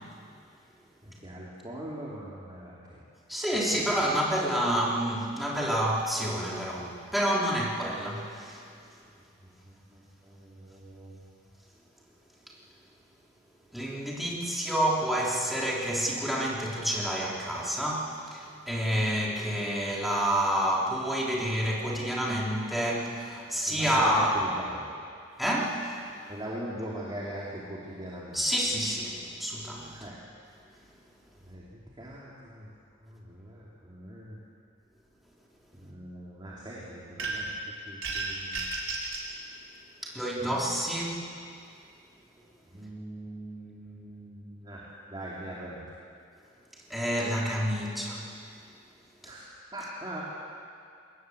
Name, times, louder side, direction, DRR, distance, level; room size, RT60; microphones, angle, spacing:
voice 1, 1.0-3.0 3.5-3.6 9.4-11.2 23.7-24.9 26.3-28.4 29.9-30.1 31.5-32.7 33.0-34.4 35.7-38.7 40.4-40.6 42.7-45.8 49.2-49.4 49.7-50.2, right 1 dB, 20° right, -5 dB, 2.8 m, -41 dB
voice 2, 3.3-8.6 13.7-24.3 25.4-25.9 28.3-29.9 40.0-41.2 46.9-48.2, equal, ahead, -4 dB, 3.4 m, -28 dB
sound 1, 37.2-37.6 38.0-39.3, right 3 dB, 80° right, 4.1 m, -33 dB
22.0 x 19.5 x 7.9 m, 2.4 s
head